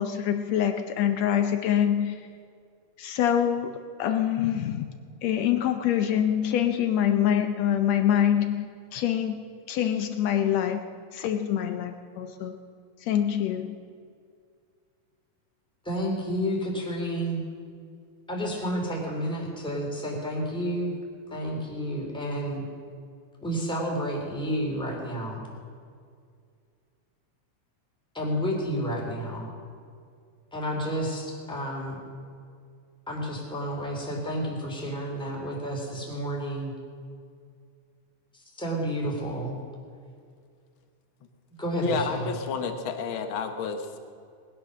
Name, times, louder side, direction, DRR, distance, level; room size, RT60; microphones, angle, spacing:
voice 1, 0.0-2.2 3.0-3.7 4.0-4.9 5.2-8.7 8.9-9.4 9.7-10.8 11.1-12.6 13.0-13.8, left 10 dB, 75° left, 8 dB, 1.8 m, -25 dB
voice 2, 15.8-17.4 18.3-20.9 21.3-22.6 23.4-25.5 28.1-29.5 30.5-32.0 33.1-36.7 38.3-39.6 41.6-42.4, equal, ahead, -2 dB, 2.7 m, -30 dB
voice 3, 41.8-44.0, left 5 dB, 55° left, 6 dB, 1.5 m, -30 dB
19.5 x 10.0 x 6.4 m, 2.2 s
omnidirectional pair, 3.4 m